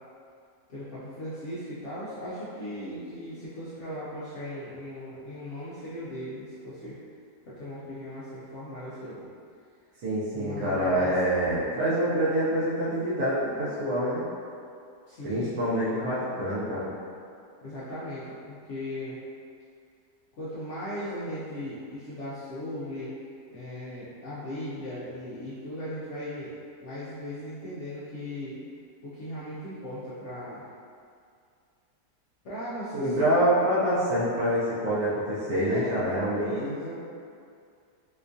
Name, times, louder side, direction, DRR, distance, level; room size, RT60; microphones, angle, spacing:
voice 1, 0.7-7.0 7.5-9.3 10.3-11.2 15.1-15.6 15.9-16.1 17.6-19.2 20.4-23.1 23.5-26.5 26.8-28.6 29.0-30.6 32.4-33.1 35.7-36.0 36.4-37.0, left 1 dB, 65° left, -10 dB, 0.7 m, -38 dB
voice 2, 10.0-14.2 15.2-16.9 32.9-36.7, right 1 dB, 65° right, -9 dB, 0.9 m, -26 dB
4.3 x 2.3 x 2.6 m, 2.3 s
omnidirectional pair, 1.8 m